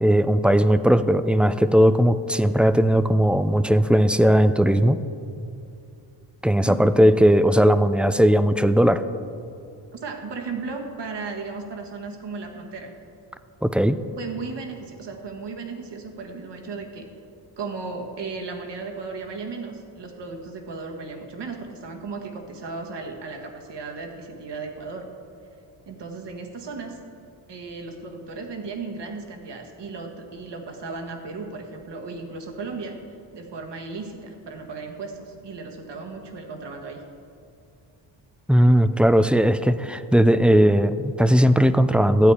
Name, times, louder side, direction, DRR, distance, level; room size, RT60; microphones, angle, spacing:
voice 1, 0.0-5.0 6.4-9.0 13.6-14.0 38.5-42.3, equal, 5° right, 12 dB, 0.3 m, -18 dB
voice 2, 9.9-13.0 14.2-17.1 17.6-25.1 25.8-27.0 27.5-33.0 33.3-37.0, right 4 dB, 60° right, 3 dB, 1.6 m, -35 dB
12.5 x 8.4 x 4.8 m, 2.5 s
cardioid pair, 65°, 47 cm